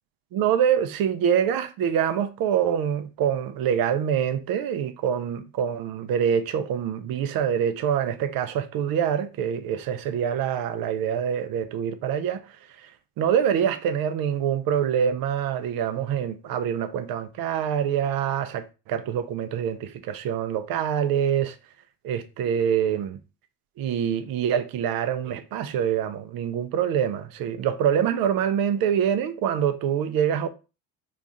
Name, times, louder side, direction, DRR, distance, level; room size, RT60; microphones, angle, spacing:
voice 1, 0.3-12.4 12.8-12.9 13.2-21.6 22.0-23.2 23.8-30.5, right 8 dB, 50° right, 0.6 m, -25 dB
3.0 x 2.5 x 3.7 m
supercardioid pair, 85°, 48 cm